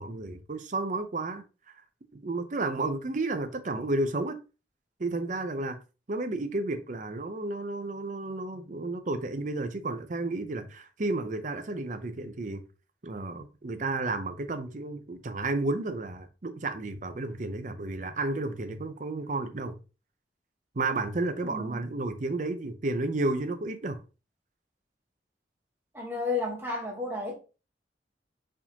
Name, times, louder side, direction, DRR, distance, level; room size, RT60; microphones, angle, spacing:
voice 1, 0.0-1.4 2.1-4.4 5.0-5.8 6.1-12.6 13.0-19.8 20.8-24.0, right 2 dB, 45° right, 0.6 m, -32 dB
voice 2, 21.4-21.9 25.9-27.3, left 3 dB, 15° right, 1.2 m, -32 dB
4.7 x 3.6 x 2.9 m
head